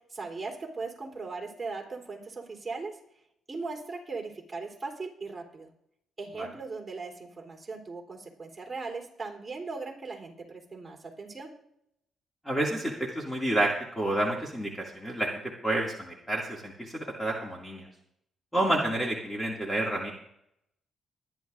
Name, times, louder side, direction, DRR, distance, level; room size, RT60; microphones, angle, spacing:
voice 1, 0.1-3.0 3.5-5.7 6.2-11.5, right 4 dB, 20° right, -1 dB, 3.6 m, -38 dB
voice 2, 12.5-17.9 18.5-20.1, right 1 dB, 5° left, -2 dB, 2.3 m, -29 dB
24.0 x 10.5 x 2.6 m, 0.74 s
cardioid pair, 100°, 0 cm